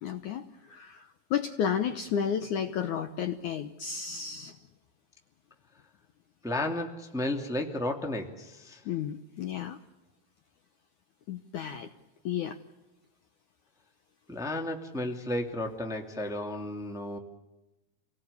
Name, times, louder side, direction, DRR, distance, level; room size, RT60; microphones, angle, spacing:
voice 1, 0.0-4.5 8.9-9.8 11.3-11.9 12.3-12.6, left 8 dB, 70° left, 8 dB, 2.0 m, -32 dB
voice 2, 6.4-8.8 14.3-17.2, left 1 dB, ahead, 3 dB, 1.6 m, -33 dB
29.0 x 18.5 x 8.3 m, 1.0 s
omnidirectional pair, 4.5 m